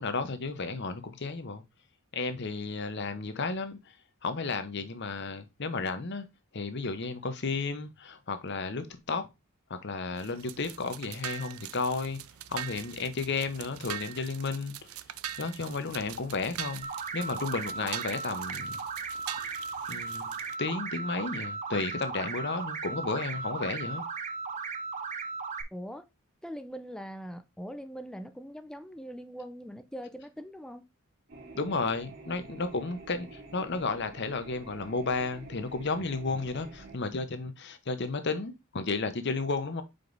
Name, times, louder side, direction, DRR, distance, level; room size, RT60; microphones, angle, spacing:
voice 1, 0.0-1.6 2.1-3.9 4.2-6.3 6.5-9.3 9.7-12.2 12.5-14.9 15.4-18.7 19.9-20.3 20.6-24.0 31.5-39.8, left 3 dB, 55° left, 0.9 m, -33 dB
sound 1, 10.1-20.6, right 11 dB, 85° right, 0.5 m, -42 dB
sound 2, 16.8-25.6, right 4 dB, 35° right, 0.6 m, -36 dB
voice 2, 25.7-26.1 26.4-30.9, equal, 5° left, 0.5 m, -42 dB
sound 3, 31.3-37.0, right 3 dB, 50° right, 2.6 m, -48 dB
5.2 x 4.6 x 3.9 m
head